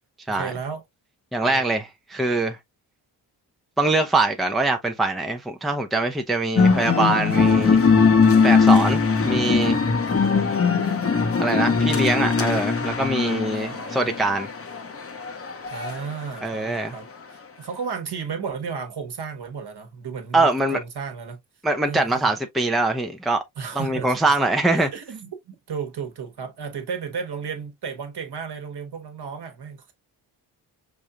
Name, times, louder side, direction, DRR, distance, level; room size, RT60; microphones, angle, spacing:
voice 1, 0.3-0.8 1.4-1.6 13.5-14.2 15.7-17.1 17.3-21.4 21.9-22.3 23.6-29.9, right 6 dB, 50° right, 1.3 m, -34 dB
voice 2, 1.3-2.6 3.8-7.8 8.4-9.8 11.4-14.5 16.4-16.9 20.3-20.8 21.6-23.4 23.7-24.9, right 2 dB, ahead, 0.7 m, -23 dB
sound 1, 6.6-16.0, left 5 dB, 30° left, 0.9 m, -20 dB
5.1 x 2.6 x 2.3 m
hypercardioid pair, 40°, 49 cm